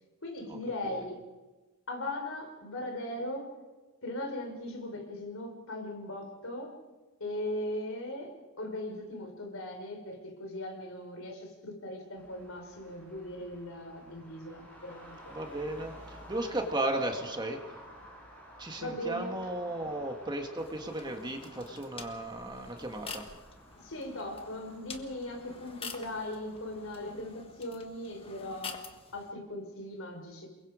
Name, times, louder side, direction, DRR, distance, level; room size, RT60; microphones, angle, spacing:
voice 1, 0.2-1.2 1.9-3.6 4.0-6.8 7.2-15.3 18.8-19.5 23.8-28.8 29.1-30.5, left 1 dB, 60° left, 3 dB, 4.9 m, -39 dB
Traffic noise roadway noise, 12.2-27.1, equal, 5° left, 7.0 m, -53 dB
voice 2, 15.3-17.6 18.6-23.3, right 1 dB, 20° right, 4 dB, 1.7 m, -35 dB
sound 1, 20.6-29.3, left 5 dB, 25° left, 1.6 m, -48 dB
29.0 x 22.0 x 5.0 m, 1.2 s
head